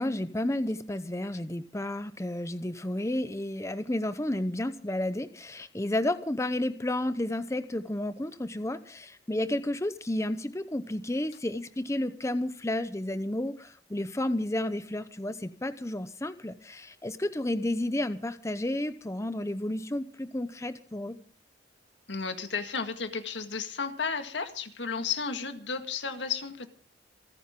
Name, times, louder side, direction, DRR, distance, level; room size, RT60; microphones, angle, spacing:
voice 1, 0.0-21.2, left 1 dB, 15° left, 12 dB, 0.8 m, -31 dB
voice 2, 22.1-26.7, left 5 dB, 90° left, 8 dB, 1.9 m, -33 dB
28.0 x 10.0 x 3.7 m, 0.39 s
head